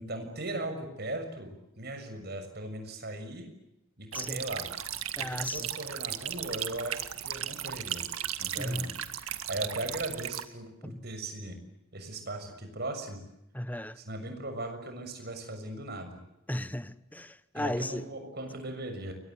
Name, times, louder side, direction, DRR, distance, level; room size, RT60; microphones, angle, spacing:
voice 1, 0.0-3.5 4.0-4.7 5.2-8.0 8.4-11.6 11.9-13.2 14.0-16.2 17.5-19.1, right 2 dB, 50° right, 6.8 m, -38 dB
sound 1, 4.1-10.4, right 11 dB, 85° right, 2.0 m, -36 dB
voice 2, 5.2-5.7 8.6-8.9 10.8-11.0 13.5-14.0 16.5-18.1, left 1 dB, 10° left, 1.1 m, -35 dB
29.5 x 23.5 x 8.0 m
head